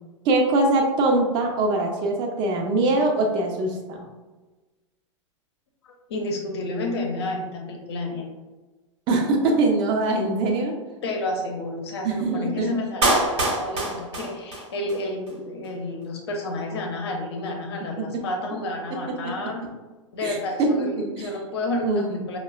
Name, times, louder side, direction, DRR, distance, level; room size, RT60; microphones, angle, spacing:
voice 1, 0.2-4.1 9.1-10.7 12.0-12.7 18.0-18.1 19.2-19.3 20.2-20.7 21.0-21.3 21.8-22.2, right 2 dB, 30° right, 2 dB, 0.7 m, -23 dB
voice 2, 5.8-8.3 11.0-19.7 20.1-22.4, left 2 dB, 55° left, 1 dB, 0.8 m, -30 dB
Clapping, 13.0-15.0 15.3-15.4, right 2 dB, 65° right, 1.0 m, -24 dB
5.4 x 2.2 x 2.3 m, 1.2 s
figure-of-eight pair, 95°, 16 cm